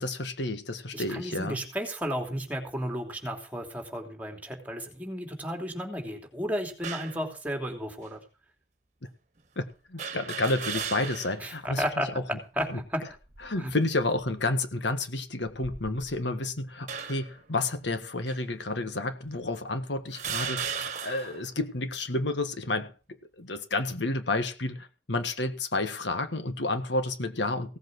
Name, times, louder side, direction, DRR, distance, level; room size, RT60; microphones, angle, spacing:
voice 1, 0.0-1.6 9.6-9.7 9.9-12.4 12.7-12.8 13.4-22.9 23.3-27.8, left 2 dB, 80° left, 9 dB, 1.6 m, -30 dB
voice 2, 0.9-8.2 11.4-12.1 12.6-13.0 13.6-13.7, equal, 10° right, 3 dB, 2.9 m, -33 dB
sound 1, 6.8-7.2 8.0-8.1 10.0-11.4 11.9-12.0 13.1-13.6 14.2-14.5 15.4-16.3 16.9-17.4 18.3-18.4 19.3-19.4 20.1-21.4, right 6 dB, 40° right, 1.6 m, -36 dB
17.0 x 8.1 x 6.2 m, 0.35 s
head